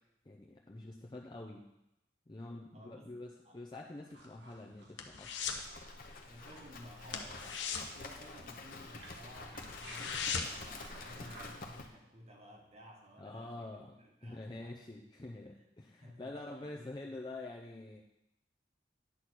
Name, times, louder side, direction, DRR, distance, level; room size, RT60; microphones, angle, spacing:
voice 1, 0.2-1.6 2.3-5.4 13.2-13.9 14.2-18.0, left 2 dB, 25° left, -1 dB, 0.6 m, -46 dB
voice 2, 2.7-3.1 3.4-3.6 6.3-14.8 15.5-15.6 16.0-16.3 16.6-17.1, equal, 35° right, 0 dB, 1.4 m, -55 dB
sound 1, 4.0-11.8, right 2 dB, 75° right, 1.4 m, -57 dB
sound 2, 4.1-5.7 6.0-6.3 6.5-6.7 7.0-8.9 9.3-9.4 9.6-10.7 11.1-11.2, left 6 dB, 80° left, 0.9 m, -39 dB
Livestock farm animals working animals, 5.4-11.9, left 3 dB, 50° left, 0.9 m, -49 dB
9.8 x 4.2 x 6.2 m, 0.85 s
head